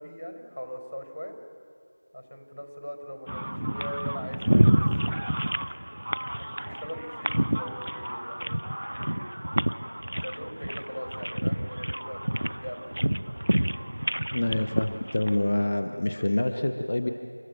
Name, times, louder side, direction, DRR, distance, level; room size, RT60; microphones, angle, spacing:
voice 1, 0.0-1.3 2.1-5.2 6.3-8.6 9.0-9.6 10.1-13.0 16.1-16.3, equal, 80° left, 5 dB, 5.0 m, -41 dB
sound 1, 3.3-15.7, equal, 45° right, 0.5 m, -28 dB
voice 2, 14.3-17.1, left 1 dB, 20° left, 6 dB, 0.5 m, -26 dB
28.5 x 13.5 x 9.1 m, 2.6 s
figure-of-eight pair, 175°, 0 cm